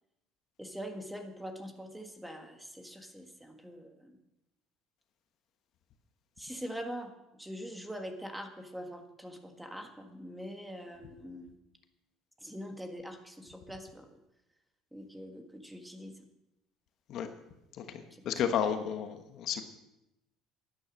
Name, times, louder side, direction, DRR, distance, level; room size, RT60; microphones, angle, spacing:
voice 1, 0.6-4.2 6.4-11.5 12.4-14.2 14.9-16.3 18.1-18.5, equal, 5° right, 5 dB, 1.8 m, -44 dB
voice 2, 17.7-19.6, left 8 dB, 55° left, 7 dB, 1.3 m, -32 dB
11.5 x 10.5 x 6.3 m, 0.91 s
cardioid pair, 115°, 0 cm